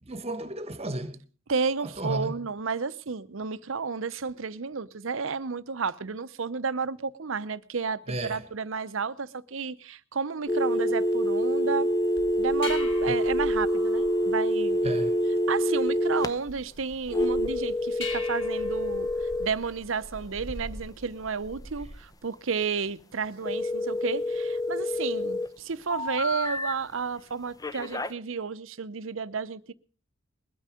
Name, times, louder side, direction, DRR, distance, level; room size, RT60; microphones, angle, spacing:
voice 1, 0.0-1.2 2.0-2.4 8.1-8.5 13.1-13.2 14.8-15.2, right 1 dB, 30° right, 1.4 m, -33 dB
voice 2, 1.5-11.9 12.4-14.8 15.5-19.1 19.4-29.7, right 5 dB, 70° right, 0.7 m, -32 dB
sound 1, 10.5-16.3 17.1-19.5 23.5-25.5 25.9-26.7 27.6-28.1, equal, 20° left, 0.8 m, -27 dB
sound 2, 12.2-22.1, left 2 dB, 65° left, 5.3 m, -43 dB
21.0 x 9.2 x 5.1 m
head